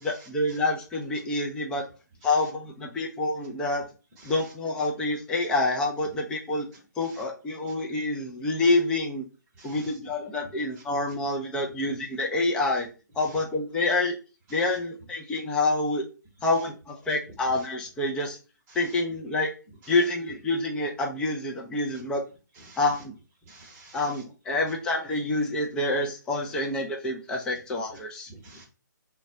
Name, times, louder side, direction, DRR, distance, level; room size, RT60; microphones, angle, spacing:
voice 1, 0.0-1.9 2.2-3.9 4.2-6.7 7.0-9.3 9.6-12.9 13.2-14.2 14.5-16.1 16.4-18.4 18.7-19.5 19.9-22.2 22.8-23.1 23.9-28.3, left 2 dB, 5° left, 0 dB, 0.4 m, -27 dB
voice 2, 9.6-9.9 22.7-22.8 23.5-24.0 28.3-28.6, right 2 dB, 15° right, -2 dB, 0.9 m, -49 dB
3.8 x 2.2 x 2.7 m, 0.33 s
figure-of-eight pair, 140°, 10 cm